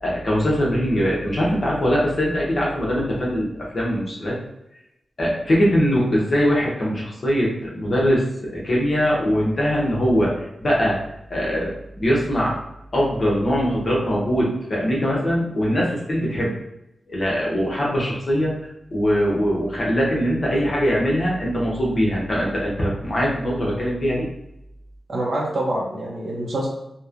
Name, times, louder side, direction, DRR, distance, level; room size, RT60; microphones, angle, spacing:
voice 1, 0.0-4.4 5.2-11.0 11.3-12.6 12.9-16.6 17.1-18.6 18.9-24.3, equal, 40° left, -5 dB, 0.7 m, -22 dB
voice 2, 25.1-26.7, right 1 dB, 50° right, -4 dB, 0.6 m, -25 dB
3.0 x 2.1 x 2.4 m, 0.85 s
wide cardioid pair, 130°, 0 cm